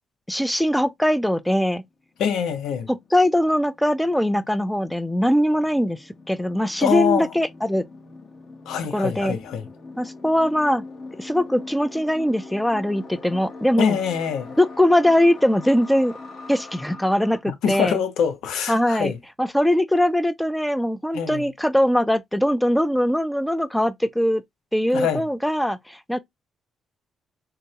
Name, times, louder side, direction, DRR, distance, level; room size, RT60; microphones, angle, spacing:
voice 1, 0.3-1.8 2.9-6.0 6.3-7.8 8.9-9.4 10.0-10.8 11.2-14.0 14.6-16.1 16.5-18.0 18.7-19.1 19.4-24.4 24.7-26.2, equal, 5° left, 0.3 m, -21 dB
sound 1, 1.9-2.0 2.2-17.4, left 3 dB, 55° left, 1.1 m, -42 dB
voice 2, 2.2-2.9 6.8-7.3 8.7-9.7 13.8-14.5 17.5-19.2 21.1-21.4 24.9-25.2, left 8 dB, 85° left, 0.7 m, -24 dB
3.8 x 2.1 x 2.7 m
cardioid pair, 90°, 0 cm